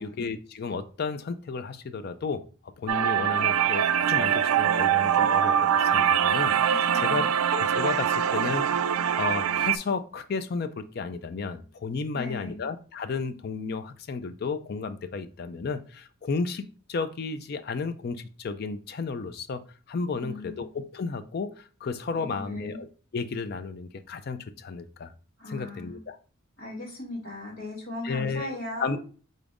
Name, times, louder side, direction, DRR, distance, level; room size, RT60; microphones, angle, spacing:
voice 1, 0.0-2.5 2.8-7.3 7.5-19.6 19.9-22.9 23.1-25.1 25.5-26.2 28.0-29.0, left 4 dB, 45° left, 12 dB, 0.4 m, -33 dB
sound 1, 2.9-9.8, right 9 dB, 85° right, 0.3 m, -23 dB
voice 2, 6.6-7.3 12.1-12.6 20.1-20.6 22.1-22.8 25.4-26.0 26.6-29.0, left 1 dB, 65° left, -4 dB, 2.3 m, -38 dB
5.2 x 3.9 x 2.4 m, 0.39 s
head